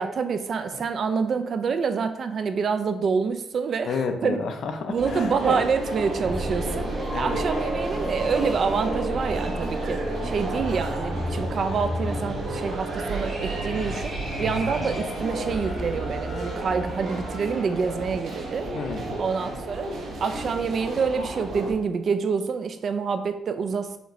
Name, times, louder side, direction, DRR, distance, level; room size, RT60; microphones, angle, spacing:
voice 1, 0.0-3.9 4.2-4.4 4.9-6.9 7.1-18.7 19.2-19.9 20.2-24.0, right 5 dB, 45° right, 9 dB, 0.3 m, -27 dB
voice 2, 3.8-5.4 7.1-7.4 18.7-19.2, left 5 dB, 60° left, 6 dB, 0.5 m, -30 dB
sound 1, 5.0-21.7, right 2 dB, 65° right, 0.9 m, -32 dB
sound 2, 6.1-18.9, equal, ahead, 0.6 m, -33 dB
4.9 x 2.6 x 3.0 m, 0.83 s
cardioid pair, 150°, 0 cm